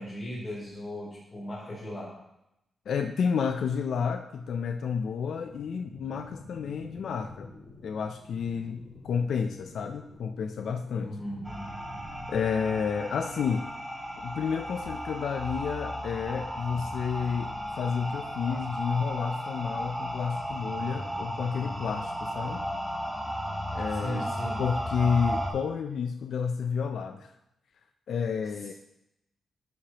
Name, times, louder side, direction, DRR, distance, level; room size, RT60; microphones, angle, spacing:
voice 1, 0.0-2.2 11.0-11.7 23.9-24.6 28.5-28.7, equal, 30° left, -7 dB, 3.1 m, -37 dB
voice 2, 2.9-7.5 7.8-11.2 12.3-13.7 14.2-22.7 23.7-24.3 24.6-27.3 28.1-28.7, left 6 dB, 70° left, 5 dB, 0.4 m, -30 dB
sound 1, 5.2-13.2, left 3 dB, 50° left, 1.8 m, -49 dB
sound 2, 11.4-25.5, equal, 5° right, 1.3 m, -35 dB
11.5 x 4.9 x 2.9 m, 0.84 s
wide cardioid pair, 130°, 0 cm